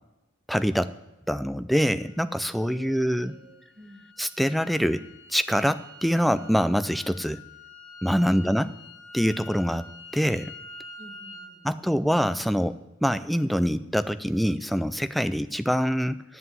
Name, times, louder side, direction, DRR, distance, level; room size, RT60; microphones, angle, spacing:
voice 1, 0.5-0.9 1.3-3.3 4.2-7.4 8.0-8.7 9.1-9.9 10.1-10.5 11.6-16.2, equal, ahead, 13 dB, 0.4 m, -25 dB
sound 1, 1.9-11.5, left 2 dB, 35° left, 4.2 m, -47 dB
voice 2, 2.7-4.1 11.0-12.0, equal, 25° right, 2 dB, 1.9 m, -48 dB
11.0 x 7.4 x 8.0 m, 1.0 s
head